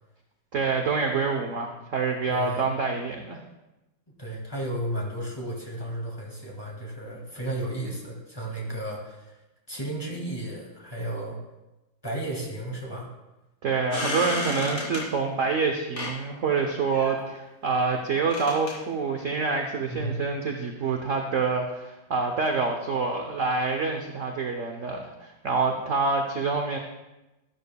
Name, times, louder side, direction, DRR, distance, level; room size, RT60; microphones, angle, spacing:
voice 1, 0.5-3.4 13.6-26.8, right 4 dB, 55° right, 3 dB, 0.9 m, -27 dB
voice 2, 2.3-2.7 4.2-9.4 9.7-11.4 12.0-13.1 19.9-20.2, right 1 dB, 10° left, -2 dB, 2.0 m, -33 dB
sound 1, 13.9-15.1 16.0-16.1 16.8-17.3 18.3-18.7, left 2 dB, 35° left, 3.0 m, -31 dB
12.5 x 12.0 x 2.3 m, 1.0 s
omnidirectional pair, 2.1 m